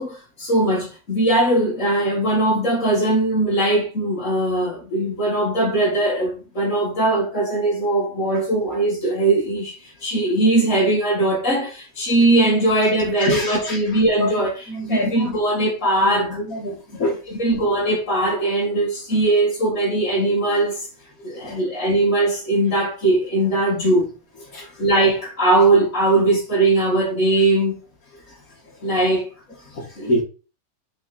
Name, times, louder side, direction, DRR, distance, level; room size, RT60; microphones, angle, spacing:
voice 1, 0.0-9.8 10.0-16.4 17.3-20.9 21.2-24.1 24.8-27.8 28.8-29.3 30.0-30.1, right 2 dB, 60° left, 2.3 m, -20 dB
voice 2, 13.2-13.8 14.2-14.3 14.7-15.3 16.0-17.2 21.4-21.6 24.5-24.7 29.7-30.2, left 1 dB, 75° left, 2.3 m, -26 dB
6.0 x 4.9 x 4.2 m
omnidirectional pair, 1.5 m